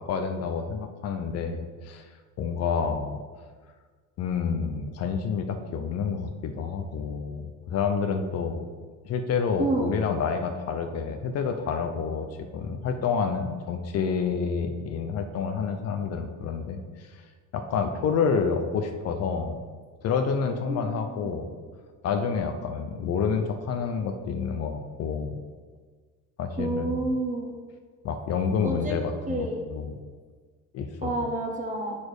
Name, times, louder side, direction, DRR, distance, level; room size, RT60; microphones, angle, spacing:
voice 1, 0.0-2.1 2.4-3.2 4.2-8.6 9.0-12.3 12.5-17.2 17.5-19.6 20.0-21.5 22.0-25.4 26.4-27.1 28.0-29.9 30.7-31.1, left 6 dB, 50° left, 6 dB, 0.6 m, -28 dB
voice 2, 9.6-9.9 20.7-20.8 21.2-21.3 26.6-27.5 28.6-29.0 29.3-29.6 31.0-32.0, right 2 dB, 25° right, 1 dB, 0.9 m, -29 dB
6.8 x 4.3 x 4.8 m, 1.5 s
cardioid pair, 160°, 31 cm